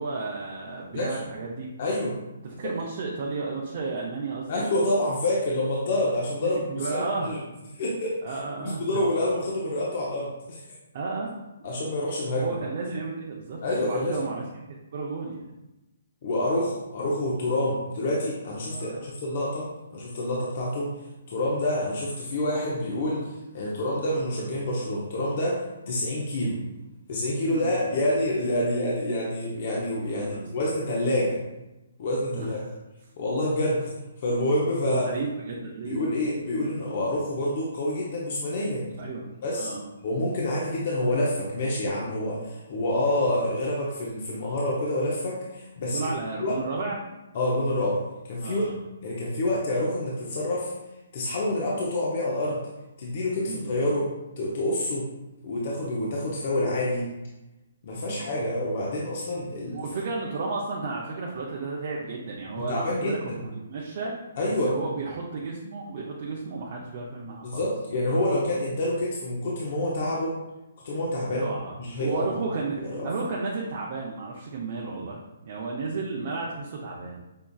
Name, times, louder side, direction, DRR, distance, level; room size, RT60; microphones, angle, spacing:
voice 1, 0.0-1.7 2.4-4.6 6.4-7.4 8.2-8.8 10.9-11.3 11.6-11.7 12.3-14.4 14.9-15.5 18.7-19.0 23.8-23.9 27.5-27.7 30.1-30.5 32.3-32.7 34.8-36.0 39.0-39.3 39.6-39.9 45.9-47.0 48.4-48.8 53.5-53.9 58.1-58.4 59.7-64.1 64.5-67.6 71.2-77.2, right 3 dB, 50° right, -3 dB, 0.5 m, -33 dB
voice 2, 1.8-2.2 4.5-7.4 7.8-10.6 11.6-12.5 13.6-14.2 16.2-20.9 21.3-26.6 27.1-31.4 32.0-32.6 33.2-33.9 34.2-35.1 35.8-38.9 39.4-39.7 40.0-46.0 46.4-46.5 47.3-48.0 48.3-48.7 49.0-50.7 51.1-52.6 53.0-55.1 55.4-57.1 57.8-59.9 62.7-63.4 64.4-64.7 67.4-70.4 70.8-71.5 71.8-72.3 72.9-73.1, left 1 dB, 50° left, -4 dB, 0.6 m, -27 dB
5.3 x 2.3 x 2.3 m, 0.99 s
hypercardioid pair, 155°, 0 cm